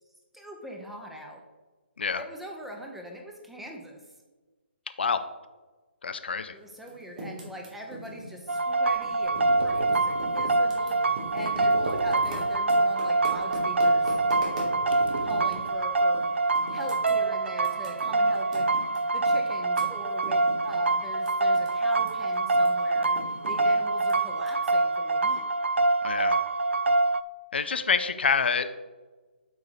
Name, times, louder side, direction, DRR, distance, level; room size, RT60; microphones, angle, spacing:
voice 1, 0.3-1.4 2.2-4.0 6.5-14.2 15.0-18.9 19.1-25.4, equal, 5° right, 1 dB, 0.9 m, -42 dB
voice 2, 6.0-6.5 26.0-26.4 27.5-28.7, left 5 dB, 60° left, 10 dB, 0.6 m, -26 dB
Typing, 6.8-9.6 9.8-15.7 16.1-16.3 16.6-21.7 21.9-24.5, right 1 dB, 35° right, 2.7 m, -41 dB
sound 1, 8.5-27.2, right 2 dB, 80° right, 0.4 m, -25 dB
sound 2, 8.8-12.7 13.0-16.2, right 2 dB, 55° right, 1.4 m, -40 dB
8.2 x 4.8 x 5.0 m, 1.3 s
figure-of-eight pair, 140°, 6 cm